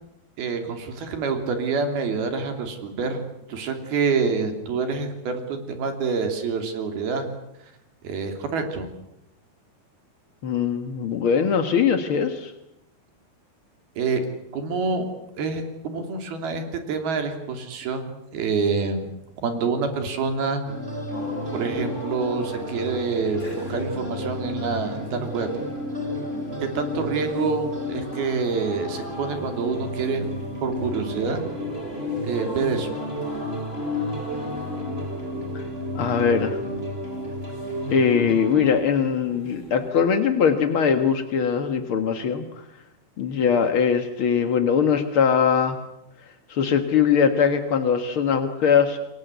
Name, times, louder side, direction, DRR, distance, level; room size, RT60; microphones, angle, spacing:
voice 1, 0.4-3.2 3.5-7.3 8.0-8.9 14.0-14.2 14.5-15.0 15.4-19.1 19.4-20.6 21.5-25.5 26.6-30.3 30.6-31.4 32.2-32.9, right 5 dB, 75° right, 6 dB, 5.0 m, -27 dB
voice 2, 10.4-12.5 35.5-35.6 35.9-36.6 37.9-42.4 43.2-45.8 46.5-49.0, left 7 dB, 55° left, 7 dB, 1.5 m, -21 dB
sound 1, 20.7-38.7, left 1 dB, 15° right, 4.4 m, -32 dB
sound 2, 21.1-39.9, left 1 dB, 15° left, 6.4 m, -40 dB
28.5 x 22.5 x 8.1 m, 0.83 s
omnidirectional pair, 4.5 m